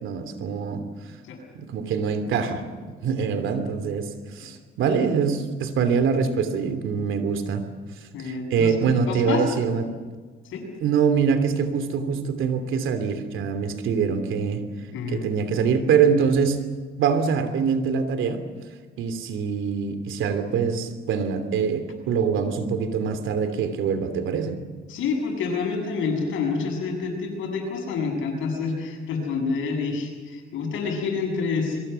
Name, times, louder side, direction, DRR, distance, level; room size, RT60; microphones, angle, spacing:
voice 1, 0.0-0.8 1.5-4.0 4.3-7.6 8.2-9.9 10.8-14.6 15.1-16.6 17.0-18.4 19.0-24.6, right 6 dB, 80° right, 9 dB, 3.0 m, -24 dB
voice 2, 8.1-9.4 10.4-10.6 14.9-15.2 24.9-31.8, left 4 dB, 85° left, 2 dB, 7.5 m, -28 dB
26.0 x 23.0 x 7.0 m, 1.4 s
cardioid pair, 90°, 20 cm